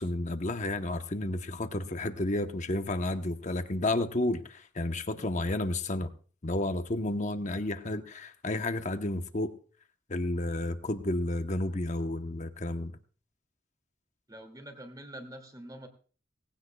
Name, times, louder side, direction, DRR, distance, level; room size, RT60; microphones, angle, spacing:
voice 1, 0.0-6.1 6.4-9.5 10.1-12.9, left 1 dB, 40° left, 8 dB, 1.0 m, -31 dB
voice 2, 14.3-15.9, right 1 dB, 20° right, 5 dB, 2.4 m, -45 dB
18.5 x 16.5 x 2.3 m, 0.41 s
head